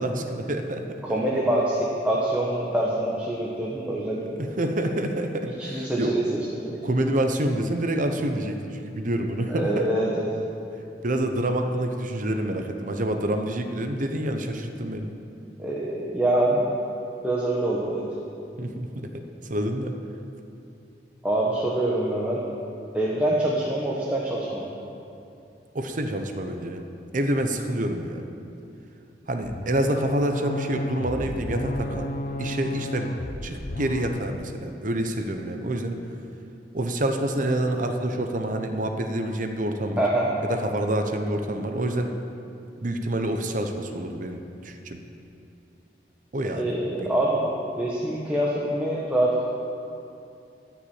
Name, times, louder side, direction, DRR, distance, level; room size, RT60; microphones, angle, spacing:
voice 1, 0.0-1.0 4.2-6.2 6.8-9.9 11.0-15.1 18.6-19.1 19.4-20.0 25.7-26.9 27.1-28.2 29.3-32.1 32.4-33.1 33.4-36.0 36.7-40.0 40.4-42.1 42.8-45.0 46.3-47.1, right 1 dB, 50° right, 5 dB, 0.9 m, -27 dB
voice 2, 1.0-4.2 5.6-6.8 9.5-10.3 15.6-16.7 17.2-18.0 21.2-22.4 22.9-24.7 40.0-40.3 46.4-47.4 47.8-49.4, right 1 dB, 10° right, -5 dB, 1.2 m, -25 dB
sound 1, 29.4-34.3, left 1 dB, 55° left, 0.8 m, -32 dB
14.0 x 6.0 x 8.8 m, 2.7 s
head